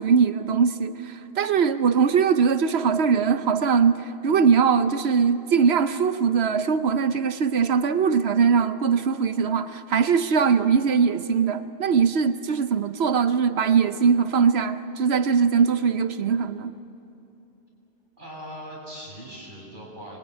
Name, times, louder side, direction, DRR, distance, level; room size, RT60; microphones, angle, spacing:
voice 1, 0.0-16.7, right 6 dB, 80° right, 11 dB, 1.1 m, -21 dB
voice 2, 18.2-20.2, equal, 50° right, -3 dB, 7.6 m, -40 dB
25.5 x 22.5 x 9.7 m, 2.9 s
omnidirectional pair, 1.1 m